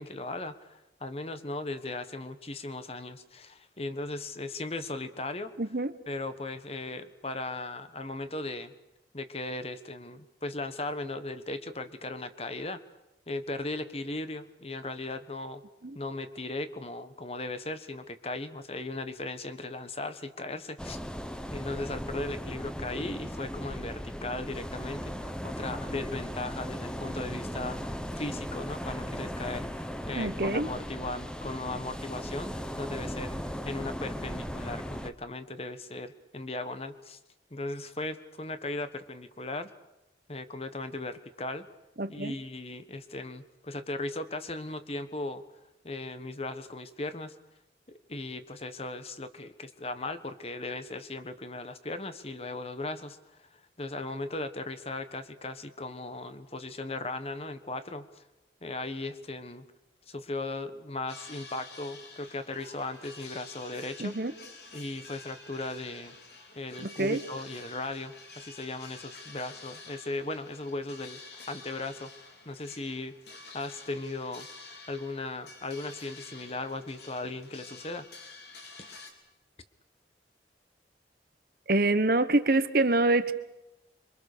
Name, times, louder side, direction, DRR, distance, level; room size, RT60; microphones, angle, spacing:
voice 1, 0.0-5.5 6.1-8.7 9.1-12.8 13.3-15.6 15.9-21.0 21.5-37.2 37.5-39.7 40.3-41.7 42.1-45.4 45.8-47.3 48.1-58.2 58.6-59.7 60.1-64.1 64.7-66.1 66.5-72.1 72.4-73.2 73.5-78.1, left 2 dB, 35° left, 10 dB, 1.4 m, -37 dB
voice 2, 5.6-5.9 15.8-16.0 30.2-30.7 42.0-42.3 64.0-64.3 66.8-67.2 81.7-83.3, right 2 dB, 55° right, 11 dB, 1.2 m, -26 dB
sound 1, 20.8-35.1, equal, 5° left, 1.0 m, -37 dB
sound 2, 61.1-79.1, left 3 dB, 65° left, 4.1 m, -49 dB
27.0 x 24.0 x 6.8 m, 0.90 s
head